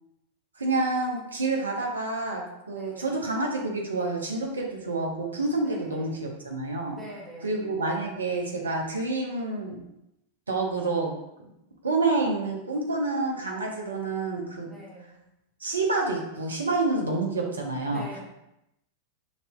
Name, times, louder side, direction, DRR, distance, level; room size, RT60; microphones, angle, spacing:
voice 1, 0.6-7.0 7.4-9.8 10.5-11.1 11.8-14.7 15.6-18.1, right 3 dB, 75° right, 0 dB, 0.8 m, -28 dB
voice 2, 2.7-3.2 5.6-6.3 6.9-7.8 14.7-15.2 17.8-18.2, equal, 5° right, -6 dB, 1.1 m, -45 dB
6.2 x 2.7 x 2.2 m, 0.86 s
figure-of-eight pair, 90°, 0 cm